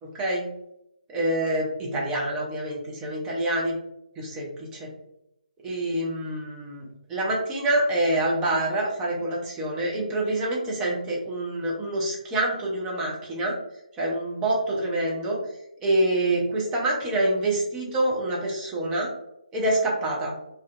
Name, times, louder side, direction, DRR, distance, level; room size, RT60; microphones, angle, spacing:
voice 1, 0.0-0.5 1.1-3.7 4.2-4.9 5.6-13.6 14.0-15.4 15.8-19.1 19.5-20.3, right 1 dB, 10° right, -3 dB, 0.4 m, -26 dB
2.4 x 2.1 x 2.3 m, 0.82 s
figure-of-eight pair, 145°, 4 cm